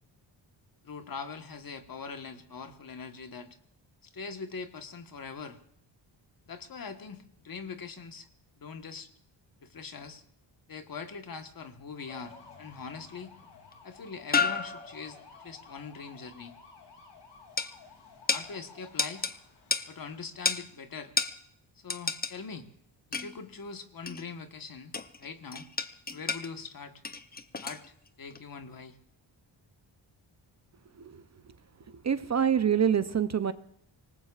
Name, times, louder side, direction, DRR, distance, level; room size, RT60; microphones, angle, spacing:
voice 1, 0.8-3.6 4.0-5.6 6.5-8.3 8.6-9.1 9.6-10.2 10.7-13.4 13.8-15.2 15.4-16.5 18.3-19.3 19.9-21.1 21.8-22.7 23.1-24.9 25.2-25.7 26.1-27.0 27.6-27.8 28.2-29.0, left 5 dB, 45° left, 7 dB, 1.4 m, -42 dB
sound 1, 11.9-20.4, left 5 dB, 60° left, 2.9 m, -54 dB
sound 2, 12.1-12.6 13.7-13.8 14.3-15.2 17.6-17.7 18.3-18.5 19.0-19.4 19.7-19.9 20.5-20.7 21.2-21.4 21.9-22.4 23.1-23.4 24.1-24.3 24.9-25.3 25.5-26.5 27.0-27.9 28.3-28.4, left 5 dB, 20° left, 0.7 m, -31 dB
voice 2, 30.9-33.5, right 8 dB, 35° right, 12 dB, 0.7 m, -27 dB
25.0 x 19.0 x 2.5 m, 0.67 s
cardioid pair, 105°, 46 cm